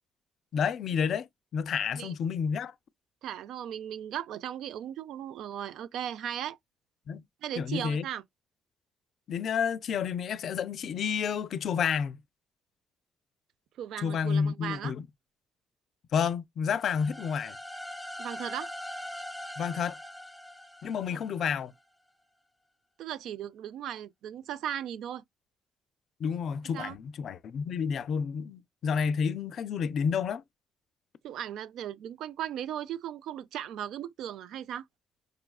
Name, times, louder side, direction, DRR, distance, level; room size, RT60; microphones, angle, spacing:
voice 1, 0.5-2.7 7.1-7.2 7.6-8.1 9.3-12.2 14.0-15.1 16.1-17.6 19.6-20.0 20.8-21.7 26.2-30.4, left 6 dB, 65° left, 0.4 m, -30 dB
voice 2, 3.2-6.6 7.4-8.2 13.8-14.9 18.2-18.7 21.1-21.2 23.0-25.2 26.7-27.0 31.2-34.8, right 10 dB, 80° right, 0.4 m, -37 dB
sound 1, 16.7-21.6, left 1 dB, 5° right, 1.1 m, -42 dB
4.8 x 2.3 x 2.2 m
cardioid pair, 90°, 0 cm